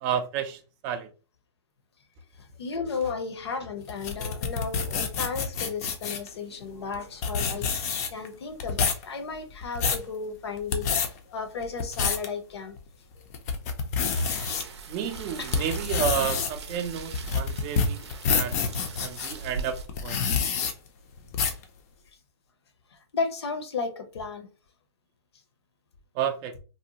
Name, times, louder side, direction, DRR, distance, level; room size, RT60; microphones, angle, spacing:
voice 1, 0.0-1.1 14.9-20.3 26.1-26.6, right 8 dB, 25° right, 0.4 m, -31 dB
voice 2, 2.4-12.8 15.4-15.6 21.3-21.5 22.9-24.5, left 5 dB, 65° left, 0.7 m, -34 dB
sound 1, 3.9-6.3 6.9-7.0 7.2-8.3 8.6-9.0 9.5-10.1 10.6-11.1 11.6-12.3 12.8-12.9 13.3-14.6 15.2-19.3 19.9-20.7 21.3-21.6, left 6 dB, 35° left, 0.5 m, -27 dB
sound 2, 14.1-19.9, right 5 dB, 75° right, 0.6 m, -40 dB
2.7 x 2.0 x 2.8 m
hypercardioid pair, 140°, 15 cm